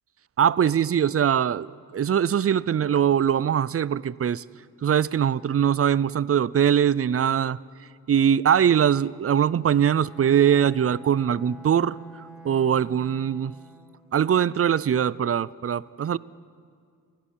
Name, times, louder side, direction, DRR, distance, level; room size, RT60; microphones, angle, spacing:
voice 1, 0.4-1.7 1.9-4.4 4.8-7.6 8.1-12.0 12.4-13.6 14.1-16.2, right 9 dB, 40° right, 21 dB, 0.4 m, -22 dB
Bowed string instrument, 9.8-14.1, right 2 dB, ahead, 4.6 m, -48 dB
24.5 x 15.5 x 7.4 m, 2.2 s
wide cardioid pair, 90°, 35 cm